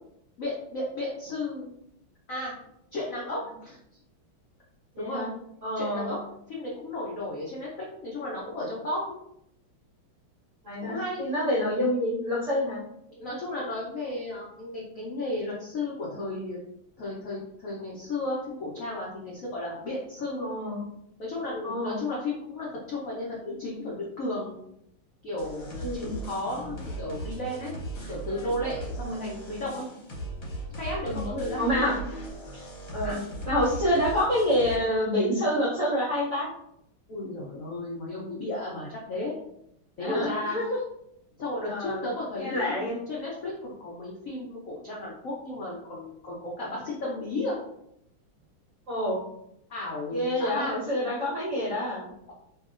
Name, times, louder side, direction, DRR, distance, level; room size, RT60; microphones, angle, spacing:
voice 1, 0.4-1.7 2.3-2.5 2.9-3.8 5.0-5.3 5.7-6.2 6.5-7.7 8.0-9.2 10.8-11.2 13.1-16.6 17.0-20.5 21.2-24.6 25.2-27.8 28.1-29.8 30.8-31.9 33.0-33.2 37.1-39.4 40.0-40.6 41.4-47.6 49.7-50.8, left 2 dB, 80° left, -5 dB, 0.7 m, -34 dB
voice 2, 4.9-5.3 5.6-6.1 10.6-12.8 20.4-20.8 21.6-22.0 25.8-26.2 28.9-29.3 31.0-31.2 31.5-32.0 32.5-32.6 32.9-33.2 33.4-36.5 40.0-40.8 41.7-42.1 42.4-43.0 48.9-49.2 50.1-52.1, left 1 dB, 60° right, -7 dB, 0.8 m, -27 dB
sound 1, 25.4-34.8, right 2 dB, 55° left, 1.1 m, -38 dB
2.9 x 2.7 x 2.4 m, 0.76 s
omnidirectional pair, 2.3 m